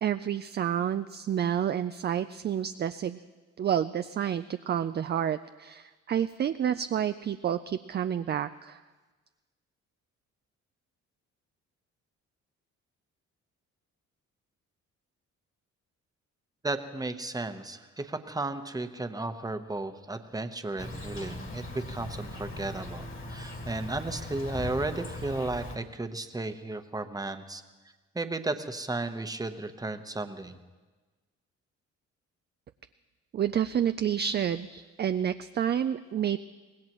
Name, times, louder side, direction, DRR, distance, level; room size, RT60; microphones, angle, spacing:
voice 1, 0.0-3.2 3.6-8.8 33.3-36.4, right 9 dB, 35° right, 10 dB, 0.4 m, -29 dB
voice 2, 16.6-27.6 28.1-30.6, right 2 dB, 10° right, 8 dB, 1.0 m, -34 dB
Insect, 20.8-25.8, left 1 dB, 40° left, 2.4 m, -39 dB
24.5 x 19.0 x 3.1 m, 1.3 s
cardioid pair, 90°, 30 cm